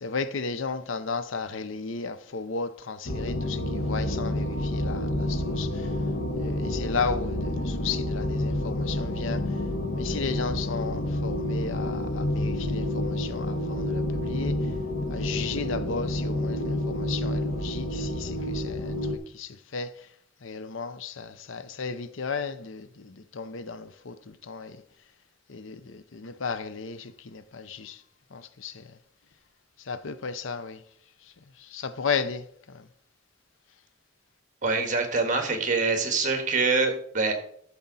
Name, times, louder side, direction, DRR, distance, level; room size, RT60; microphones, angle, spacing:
voice 1, 0.0-5.7 6.4-9.5 10.0-14.6 15.1-19.0 19.3-19.9 20.4-24.8 25.5-28.0 28.3-28.9 29.9-30.8 31.7-32.8, left 5 dB, 70° left, 0.7 m, -34 dB
sound 1, 3.1-19.2, left 1 dB, 85° left, 1.6 m, -29 dB
voice 2, 34.6-37.3, right 4 dB, 40° right, 1.7 m, -25 dB
12.5 x 7.1 x 4.1 m
head